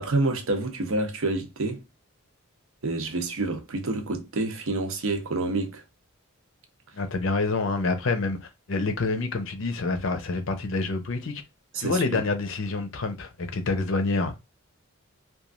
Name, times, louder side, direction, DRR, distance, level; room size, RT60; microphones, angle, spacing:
voice 1, 0.0-1.8 2.8-5.8 11.7-12.2, right 2 dB, 65° right, 0.7 m, -28 dB
voice 2, 6.9-8.4 8.7-11.4 11.8-14.3, left 3 dB, 60° left, 0.6 m, -27 dB
3.0 x 2.4 x 2.4 m
head